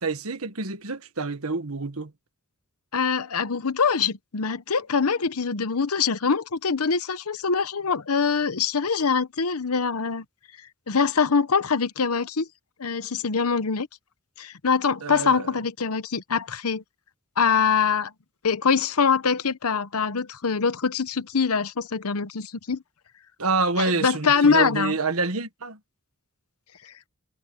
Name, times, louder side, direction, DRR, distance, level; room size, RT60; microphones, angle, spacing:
voice 1, 0.0-2.1 15.0-15.5 23.4-25.8, right 3 dB, 80° right, 1.6 m, -27 dB
voice 2, 2.9-10.2 10.9-12.5 12.8-13.9 14.4-16.8 17.4-18.1 18.4-22.8 23.8-25.0, left 5 dB, 85° left, 0.9 m, -24 dB
head